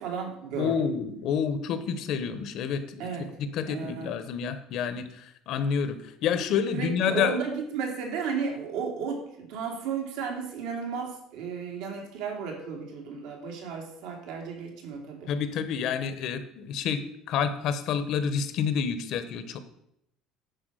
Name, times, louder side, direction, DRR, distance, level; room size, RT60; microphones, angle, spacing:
voice 1, 0.0-0.8 3.0-3.3 3.7-4.2 6.7-15.3, right 6 dB, 75° right, 1 dB, 2.6 m, -34 dB
voice 2, 0.5-3.1 3.5-7.3 15.3-17.0 17.3-19.6, left 7 dB, 50° left, 11 dB, 0.9 m, -28 dB
10.5 x 4.8 x 6.3 m, 0.78 s
cardioid pair, 170°, 0 cm